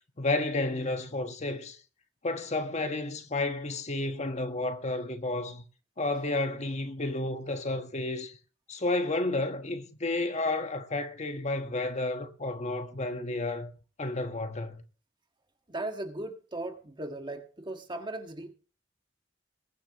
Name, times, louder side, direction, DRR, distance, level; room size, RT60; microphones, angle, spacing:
voice 1, 0.2-1.8 2.2-5.6 6.0-8.4 8.7-13.7 14.0-14.8, left 2 dB, 40° left, 1.4 m, -31 dB
voice 2, 15.7-18.5, right 2 dB, 25° right, 1.6 m, -37 dB
21.5 x 10.5 x 3.0 m
head